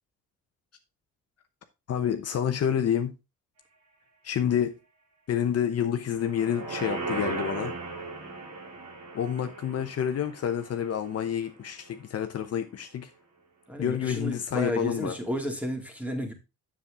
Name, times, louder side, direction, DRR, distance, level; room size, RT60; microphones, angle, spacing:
voice 1, 1.9-3.1 4.2-4.8 5.3-7.7 9.1-13.1 13.8-15.1, left 9 dB, 55° left, 0.9 m, -28 dB
sound 1, 6.1-11.5 11.9-12.0, right 3 dB, 60° right, 2.4 m, -37 dB
voice 2, 13.7-16.3, equal, 5° right, 2.3 m, -32 dB
7.2 x 7.2 x 3.5 m
cardioid pair, 90°, 30 cm